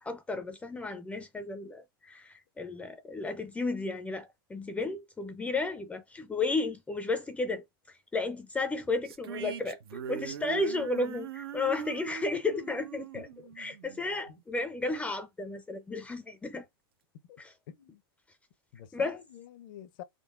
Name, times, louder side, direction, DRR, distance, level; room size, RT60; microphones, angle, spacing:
voice 1, 0.0-13.3 13.6-16.7 17.4-17.5 18.9-19.2, left 3 dB, 10° left, 0.4 m, -33 dB
sound 1, 9.1-14.4, right 9 dB, 80° right, 0.5 m, -41 dB
voice 2, 13.1-13.6 14.3-14.4 17.3-17.4 17.7-18.0 18.7-20.0, left 11 dB, 60° left, 0.6 m, -48 dB
3.7 x 3.7 x 2.4 m
hypercardioid pair, 125°, 12 cm